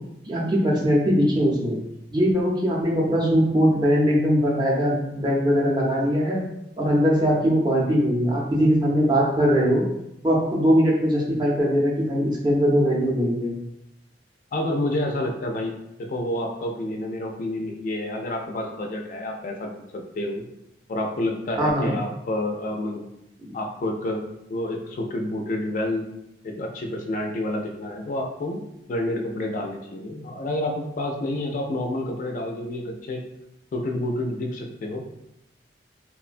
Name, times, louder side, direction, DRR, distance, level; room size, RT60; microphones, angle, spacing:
voice 1, 0.3-1.8 2.1-6.4 6.8-9.9 10.2-13.5 21.6-22.0 23.5-23.6, equal, 25° right, -4 dB, 0.5 m, -21 dB
voice 2, 14.5-15.7 16.0-20.4 20.9-23.1 23.5-24.2 24.5-26.1 26.4-28.6 28.9-33.2 33.7-35.0, left 1 dB, 45° left, 2 dB, 0.3 m, -29 dB
3.1 x 2.1 x 2.5 m, 0.86 s
head